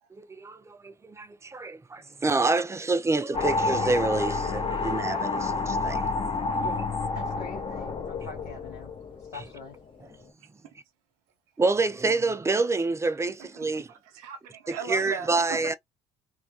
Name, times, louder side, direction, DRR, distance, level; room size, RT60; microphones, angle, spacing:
voice 1, 0.1-6.1 6.5-6.9 11.6-13.9 14.9-15.7, right 3 dB, 15° right, 0.4 m, -27 dB
sound 1, 3.3-9.8, left 3 dB, 30° left, 0.6 m, -29 dB
voice 2, 7.1-8.9 9.2-9.8, left 4 dB, 80° left, 0.7 m, -44 dB
voice 3, 13.2-15.8, right 7 dB, 70° right, 0.5 m, -39 dB
2.2 x 2.2 x 2.6 m
hypercardioid pair, 55°, 19 cm